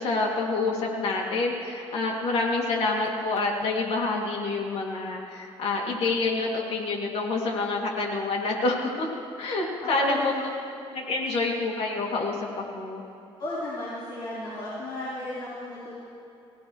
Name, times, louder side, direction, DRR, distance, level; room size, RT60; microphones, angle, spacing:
voice 1, 0.0-9.1 9.4-10.3 10.9-13.0, left 3 dB, 75° left, -1 dB, 2.9 m, -27 dB
voice 2, 9.8-10.5 13.4-15.9, left 1 dB, 50° left, -8 dB, 4.5 m, -33 dB
24.5 x 17.0 x 3.3 m, 2.8 s
cardioid pair, 110°, 10 cm